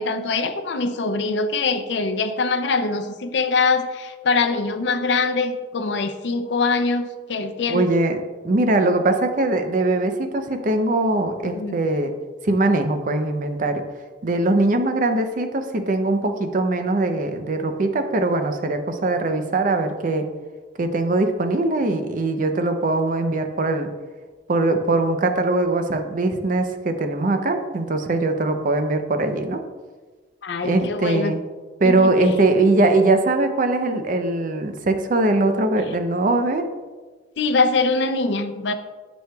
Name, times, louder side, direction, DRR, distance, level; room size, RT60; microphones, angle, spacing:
voice 1, 0.0-7.9 11.5-11.8 30.4-31.3 31.8-32.1 37.4-38.7, left 4 dB, 75° left, 7 dB, 0.5 m, -23 dB
voice 2, 7.7-12.1 12.4-13.8 14.2-20.3 20.8-23.9 24.5-29.6 30.6-31.4 31.8-36.6, right 2 dB, 50° right, 7 dB, 0.6 m, -21 dB
9.4 x 6.3 x 2.3 m, 1.4 s
head